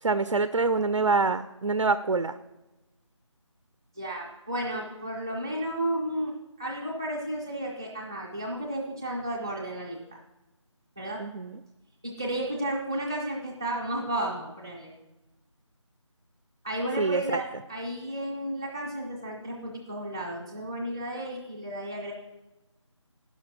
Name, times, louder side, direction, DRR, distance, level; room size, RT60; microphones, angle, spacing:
voice 1, 0.0-2.4 11.2-11.6 17.0-17.4, right 4 dB, 75° right, 12 dB, 0.5 m, -26 dB
voice 2, 3.9-6.3 6.6-10.2 11.0-11.2 12.0-14.9 16.6-17.4 17.7-22.1, right 1 dB, 10° right, -4 dB, 0.6 m, -33 dB
11.5 x 5.7 x 5.9 m, 1.0 s
figure-of-eight pair, 170°, 16 cm